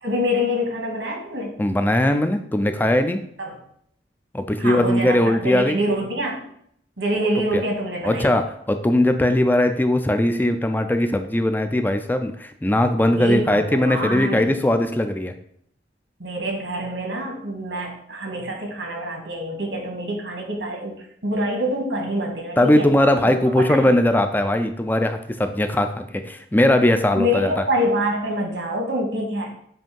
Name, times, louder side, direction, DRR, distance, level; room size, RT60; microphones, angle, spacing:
voice 1, 0.0-1.6 3.4-3.6 4.6-6.4 7.0-8.3 13.1-14.5 16.2-20.9 21.2-22.9 23.3-23.4 23.7-23.9 27.2-29.5, equal, 85° right, 1 dB, 1.8 m, -26 dB
voice 2, 1.6-3.2 4.3-5.8 7.5-7.6 8.0-15.3 22.6-27.6, left 1 dB, 10° left, 7 dB, 0.4 m, -19 dB
7.7 x 2.7 x 5.3 m, 0.69 s
head